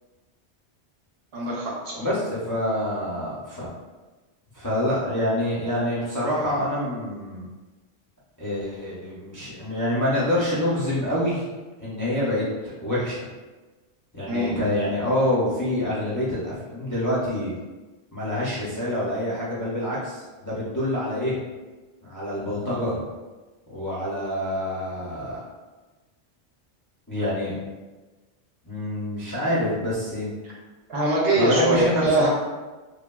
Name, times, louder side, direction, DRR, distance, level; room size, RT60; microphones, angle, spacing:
voice 1, 1.3-2.1 14.3-14.5 30.9-32.3, right 2 dB, 60° right, -4 dB, 0.9 m, -23 dB
voice 2, 1.9-3.7 4.5-7.5 8.4-11.4 11.8-13.3 14.1-17.5 18.1-21.3 22.0-23.0 23.7-25.4 27.1-27.6 28.6-30.3 31.3-32.3, left 1 dB, 25° left, -9 dB, 0.4 m, -26 dB
3.3 x 2.2 x 2.2 m, 1.2 s
omnidirectional pair, 1.2 m